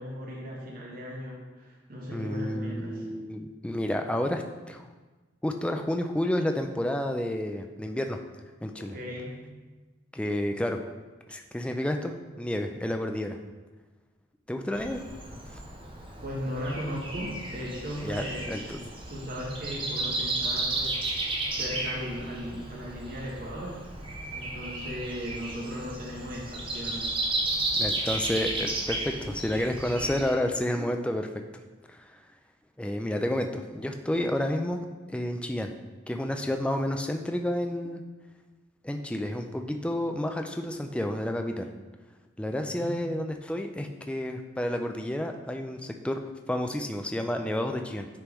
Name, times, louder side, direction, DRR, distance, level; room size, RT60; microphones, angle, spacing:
voice 1, 0.0-3.1 8.8-9.4 16.2-18.6 19.1-21.3 21.5-27.4 42.4-43.0, equal, 45° right, -3 dB, 1.0 m, -37 dB
voice 2, 2.1-4.8 5.4-8.2 8.6-9.0 10.1-10.8 11.3-13.4 14.5-15.0 18.0-18.8 27.8-31.3 31.9-32.2 32.8-35.7 36.1-38.0 38.8-41.7 42.4-46.2 46.5-48.1, left 1 dB, 5° left, 5 dB, 0.3 m, -30 dB
Breathing, 14.7-30.3, right 2 dB, 25° right, 0.7 m, -33 dB
9.8 x 3.5 x 3.0 m, 1.3 s
head